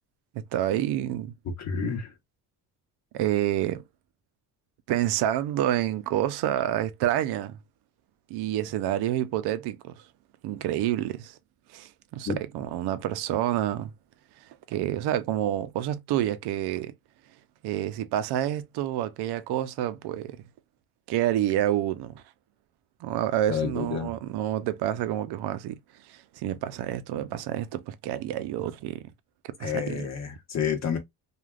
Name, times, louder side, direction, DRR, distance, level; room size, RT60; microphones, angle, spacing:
voice 1, 0.3-1.3 3.1-3.8 4.9-7.6 8.3-9.9 10.4-11.4 11.7-13.9 14.7-16.9 17.6-20.4 21.1-22.2 23.0-25.8 26.1-29.0 29.4-30.0, right 12 dB, 80° right, 0.6 m, -28 dB
voice 2, 1.6-2.1 12.3-12.4 23.5-24.1 29.6-31.0, left 6 dB, 40° left, 1.0 m, -29 dB
3.3 x 2.4 x 2.3 m
cardioid pair, 100°, 39 cm